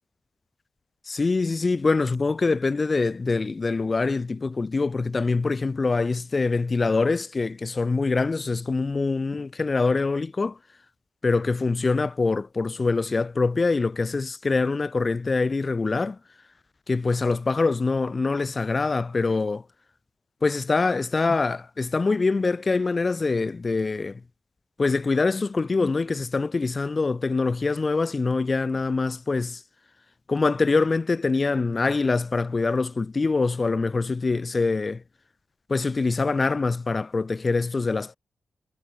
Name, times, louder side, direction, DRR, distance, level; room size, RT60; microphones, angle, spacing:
voice 1, 1.1-10.6 11.2-16.2 16.9-19.6 20.4-24.2 24.8-29.6 30.3-35.0 35.7-38.1, left 3 dB, 45° left, 4.8 m, -24 dB
supercardioid pair, 45°, 0 cm